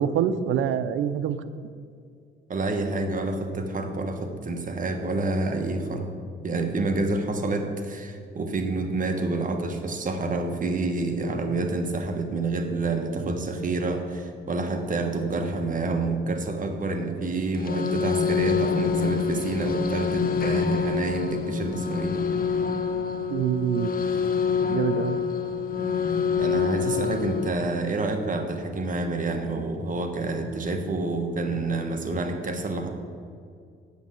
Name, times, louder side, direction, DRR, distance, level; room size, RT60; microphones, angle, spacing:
voice 1, 0.0-1.4 23.3-23.9 24.7-25.2, right 9 dB, 80° right, 12 dB, 0.6 m, -25 dB
voice 2, 2.5-6.1 6.4-22.2 26.4-32.9, right 2 dB, 40° right, 5 dB, 1.4 m, -28 dB
sound 1, 17.5-27.5, left 5 dB, 45° left, 1.0 m, -26 dB
8.2 x 7.3 x 8.2 m, 2.2 s
cardioid pair, 90°, 20 cm